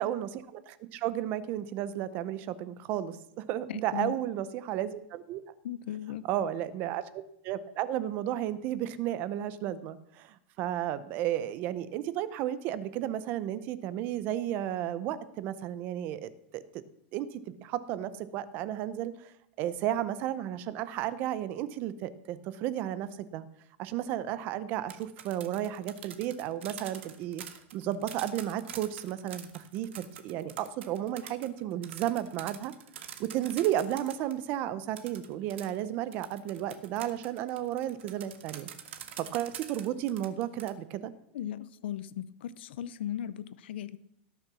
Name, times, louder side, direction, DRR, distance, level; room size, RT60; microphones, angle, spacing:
voice 1, 0.0-5.4 6.3-16.6 17.1-19.3 19.6-23.4 23.8-27.4 27.7-32.7 33.2-38.7 39.2-41.1, right 12 dB, 30° right, 15 dB, 0.7 m, -33 dB
voice 2, 3.7-4.2 5.6-6.3 41.3-44.0, left 11 dB, 60° left, 16 dB, 0.7 m, -37 dB
sound 1, 24.7-34.4 35.0-40.7, right 9 dB, 75° right, 1.6 m, -46 dB
18.0 x 6.9 x 6.1 m, 0.75 s
supercardioid pair, 175°, 7 cm